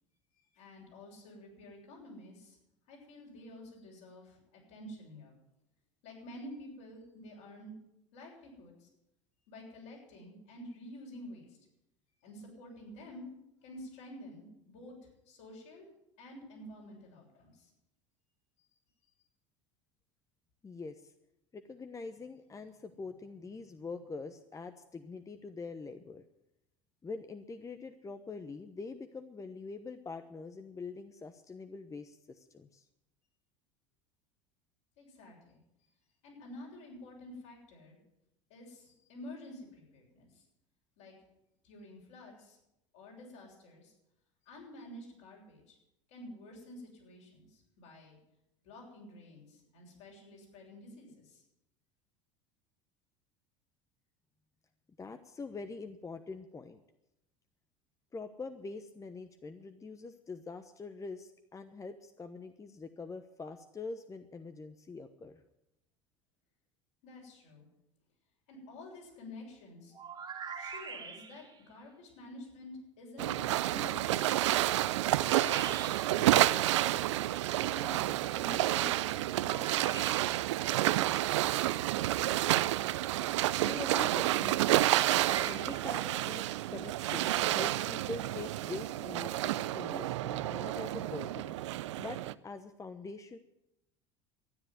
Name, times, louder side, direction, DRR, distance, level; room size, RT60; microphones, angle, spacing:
voice 1, 0.5-2.6 2.9-5.3 6.0-7.7 8.1-8.9 9.5-11.6 12.2-13.3 13.6-14.9 15.3-15.9 16.2-17.7 35.0-35.6 36.2-38.0 38.5-40.4 41.0-41.1 41.6-42.6 42.9-43.9 44.5-45.8 46.1-48.2 48.6-51.4 67.0-67.7 68.5-69.9 70.6-74.5 75.2-76.4 76.7-80.2, left 1 dB, 70° left, -2 dB, 7.3 m, -50 dB
voice 2, 20.6-21.1 21.5-26.2 27.0-32.8 55.0-56.8 58.1-65.4 83.6-84.9 85.4-91.6 92.0-93.4, left 4 dB, 20° left, 8 dB, 1.0 m, -44 dB
sound 1, 69.9-71.6 75.1-76.3 79.4-80.6 84.8-86.1, right 6 dB, 30° right, 2.4 m, -43 dB
sound 2, 73.2-92.3, right 15 dB, 75° right, 0.5 m, -30 dB
13.0 x 10.0 x 9.5 m, 0.86 s
hypercardioid pair, 75°, 15 cm